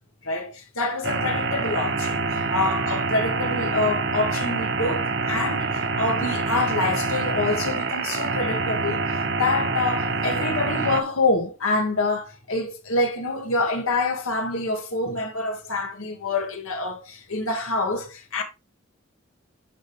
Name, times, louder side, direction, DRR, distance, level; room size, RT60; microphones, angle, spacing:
voice 1, 0.2-18.4, left 2 dB, 85° left, 1.9 m, -26 dB
sound 1, 1.0-11.0, right 3 dB, 50° right, 0.8 m, -26 dB
10.0 x 4.9 x 3.5 m
head